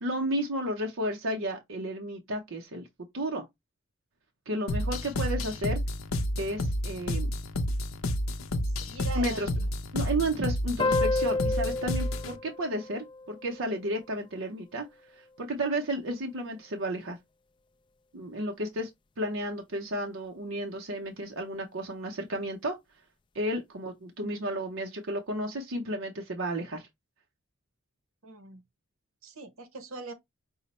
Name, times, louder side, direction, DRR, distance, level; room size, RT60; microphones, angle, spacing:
voice 1, 0.0-2.8 3.1-3.5 4.5-5.8 6.4-7.3 9.1-9.5 9.9-17.2 18.1-18.9 19.2-22.8 23.3-26.9, right 1 dB, 65° right, 0.7 m, -32 dB
sound 1, 4.7-12.4, left 1 dB, 75° left, 0.6 m, -30 dB
voice 2, 8.6-9.7 28.2-28.6 29.2-30.1, right 3 dB, 85° right, 1.0 m, -41 dB
sound 2, 10.8-13.9, left 3 dB, 25° left, 0.3 m, -31 dB
5.5 x 2.0 x 4.1 m
head